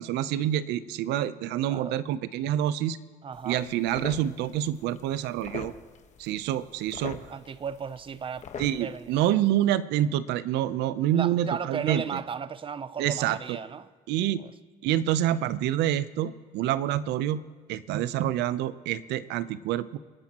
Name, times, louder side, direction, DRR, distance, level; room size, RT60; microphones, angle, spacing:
voice 1, 0.0-3.0 3.4-5.7 6.2-7.2 8.6-12.2 13.0-13.6 14.1-14.4 14.8-17.4 17.7-20.0, right 12 dB, 90° right, 0.7 m, -27 dB
voice 2, 3.2-3.6 7.3-8.5 8.8-9.4 11.1-13.9 14.4-14.5, right 6 dB, 30° right, 0.6 m, -35 dB
sound 1, 3.3-9.3, left 7 dB, 45° left, 1.2 m, -44 dB
27.5 x 10.5 x 3.0 m
cardioid pair, 110°, 17 cm